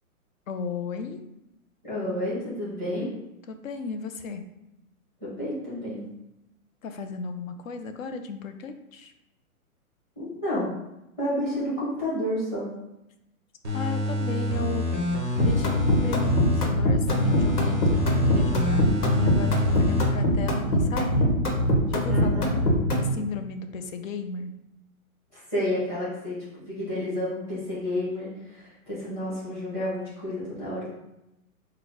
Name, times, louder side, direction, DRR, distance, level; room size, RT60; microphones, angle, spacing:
voice 1, 0.5-1.2 3.5-4.4 6.8-9.1 13.7-14.8 15.4-21.3 21.9-22.3 22.9-24.5, left 5 dB, 65° left, 8 dB, 0.6 m, -35 dB
voice 2, 1.8-3.1 5.2-6.0 10.2-10.7 11.2-12.6 22.1-22.6 25.3-30.9, left 1 dB, 10° left, -8 dB, 0.8 m, -30 dB
sound 1, 13.6-16.7 17.1-20.1 20.5-20.6, left 2 dB, 20° right, 0.4 m, -27 dB
sound 2, 15.4-23.1, equal, 90° left, 1.2 m, -22 dB
4.0 x 2.2 x 4.5 m, 0.89 s
hypercardioid pair, 175°, 44 cm